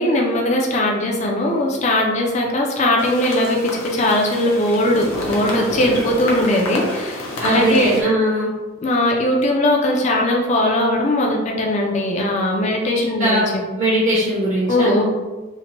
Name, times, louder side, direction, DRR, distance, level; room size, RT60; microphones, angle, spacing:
voice 1, 0.0-8.0 8.8-13.6 14.7-15.0, left 1 dB, 30° left, -1 dB, 0.3 m, -19 dB
sound 1, 3.0-8.0, left 2 dB, 70° left, 0.6 m, -29 dB
voice 2, 7.4-8.5 13.2-13.4 13.8-14.9, right 1 dB, 35° right, -9 dB, 0.6 m, -19 dB
2.8 x 2.1 x 2.9 m, 1.2 s
head